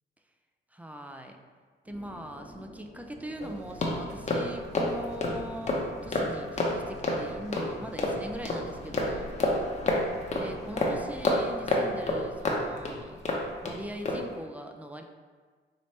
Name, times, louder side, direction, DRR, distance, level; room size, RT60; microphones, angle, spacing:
voice 1, 0.7-1.4 1.8-9.4 10.3-13.2 13.6-15.0, equal, 5° right, 4 dB, 0.3 m, -41 dB
sound 1, 1.8-11.3, right 1 dB, 40° right, 1.2 m, -50 dB
sound 2, 3.4-13.7 14.0-14.3, left 2 dB, 35° left, 0.7 m, -30 dB
4.3 x 3.1 x 3.1 m, 1.5 s
cardioid pair, 90°, 20 cm